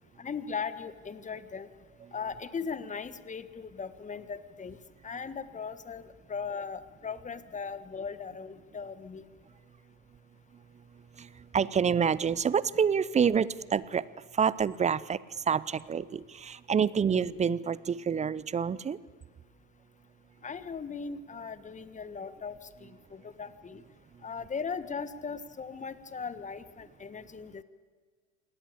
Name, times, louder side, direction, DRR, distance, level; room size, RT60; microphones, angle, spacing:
voice 1, 0.2-1.7 2.1-4.8 5.0-9.3 20.4-23.8 24.2-27.6, left 5 dB, 20° left, 12 dB, 1.4 m, -38 dB
voice 2, 11.5-14.0 14.4-15.2 15.5-19.0, right 7 dB, 20° right, 20 dB, 0.6 m, -27 dB
28.0 x 19.0 x 8.5 m, 1.5 s
hypercardioid pair, 85°, 39 cm